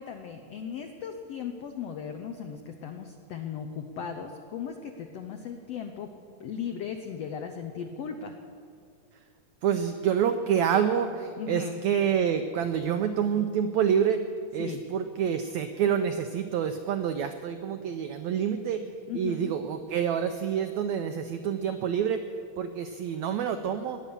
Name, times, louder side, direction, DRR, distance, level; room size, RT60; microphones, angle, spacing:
voice 1, 0.0-6.1 6.4-8.3 11.4-11.8 14.6-14.8 19.1-19.5, left 7 dB, 80° left, 5 dB, 1.4 m, -37 dB
voice 2, 9.6-14.2 14.5-18.9 19.1-22.2 22.6-24.0, right 8 dB, 85° right, 7 dB, 1.6 m, -27 dB
18.0 x 10.5 x 7.1 m, 2.2 s
omnidirectional pair, 3.9 m